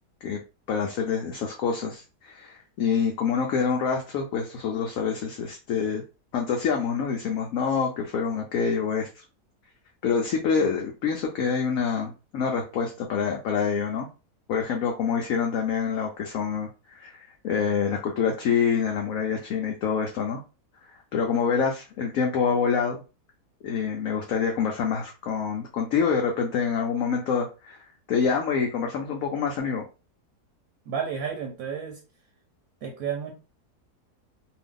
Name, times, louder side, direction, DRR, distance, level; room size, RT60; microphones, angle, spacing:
voice 1, 0.7-6.0 6.3-9.2 10.0-14.1 14.5-20.4 20.9-23.0 23.6-27.8 28.1-29.8, left 6 dB, 70° left, 1 dB, 0.9 m, -26 dB
voice 2, 30.9-32.0 32.8-33.3, right 7 dB, 70° right, 3 dB, 1.0 m, -31 dB
2.7 x 2.3 x 3.6 m, 0.32 s
omnidirectional pair, 1.7 m